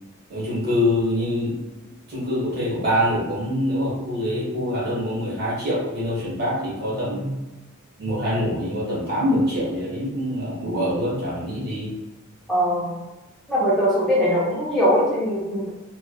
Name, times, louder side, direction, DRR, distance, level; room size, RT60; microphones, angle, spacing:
voice 1, 0.3-1.6 2.1-7.4 8.0-11.9, left 1 dB, 50° right, -6 dB, 1.2 m, -24 dB
voice 2, 12.5-12.9 13.5-15.7, equal, ahead, -8 dB, 0.5 m, -21 dB
3.2 x 2.2 x 2.2 m, 1.1 s
head